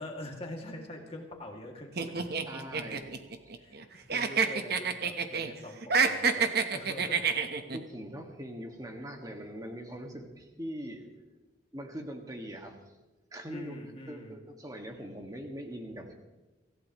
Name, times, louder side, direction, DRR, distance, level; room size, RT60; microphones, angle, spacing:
voice 1, 0.0-2.3 3.6-6.5 6.7-7.3 13.5-14.4, left 1 dB, 30° left, 0 dB, 2.3 m, -44 dB
sound 1, 2.0-3.8 4.1-5.5 5.8-7.8, right 5 dB, 55° right, 1.1 m, -28 dB
voice 2, 2.5-3.5 4.0-4.1 7.3-11.1 11.7-12.8 13.3-13.8 14.1-16.1, equal, 20° right, 3 dB, 1.8 m, -42 dB
25.5 x 15.5 x 3.1 m, 1.1 s
head